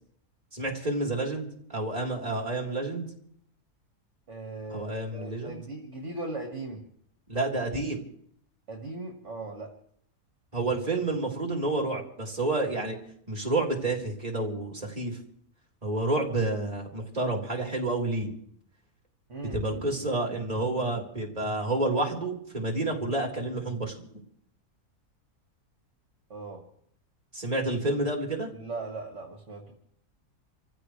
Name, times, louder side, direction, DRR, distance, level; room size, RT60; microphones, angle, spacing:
voice 1, 0.5-3.1 4.7-5.6 7.3-8.0 10.5-13.0 13.3-15.2 15.8-18.3 19.5-24.0 27.3-28.5, right 2 dB, 25° right, 0 dB, 3.9 m, -29 dB
voice 2, 4.3-6.8 8.7-9.7 19.3-20.1 26.3-26.6 28.5-29.7, right 2 dB, 50° right, 1 dB, 2.3 m, -39 dB
28.5 x 15.5 x 3.3 m, 0.67 s
omnidirectional pair, 1.6 m